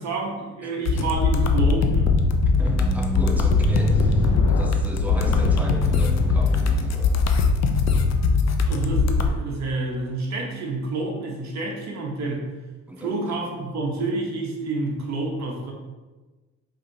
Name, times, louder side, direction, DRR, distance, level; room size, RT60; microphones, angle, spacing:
voice 1, 0.0-2.1 8.7-12.5 13.0-15.7, right 2 dB, 65° right, 0 dB, 1.0 m, -28 dB
voice 2, 0.6-1.2 1.8-1.9 2.4-7.1 12.9-13.4, right 1 dB, 5° right, 1 dB, 0.6 m, -36 dB
sound 1, 0.8-9.3, left 4 dB, 60° left, 0.5 m, -21 dB
Squeak, 1.2-7.6 8.4-8.5, right 1 dB, 15° left, 1.0 m, -30 dB
4.9 x 2.8 x 2.7 m, 1.2 s
cardioid pair, 90°, 30 cm